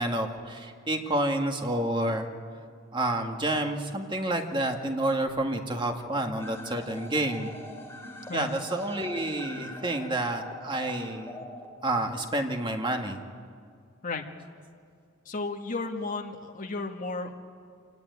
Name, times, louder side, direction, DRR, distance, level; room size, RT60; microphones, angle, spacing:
voice 1, 0.0-2.3 2.9-7.5 8.3-11.4 11.8-13.2, right 1 dB, 25° right, 4 dB, 1.9 m, -29 dB
sound 1, 6.4-12.4, left 2 dB, 10° left, 3.0 m, -43 dB
voice 2, 15.3-17.3, left 3 dB, 40° left, 3 dB, 1.7 m, -33 dB
26.0 x 18.0 x 9.5 m, 2.2 s
head